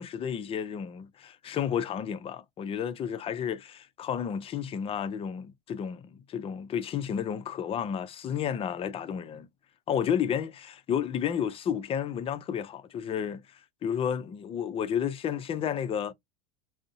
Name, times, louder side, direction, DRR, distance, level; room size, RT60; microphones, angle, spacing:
voice 1, 0.0-9.5 9.9-13.4 13.8-16.1, left 8 dB, 25° left, 0.4 m, -31 dB
2.6 x 2.0 x 2.5 m
supercardioid pair, 110°, 21 cm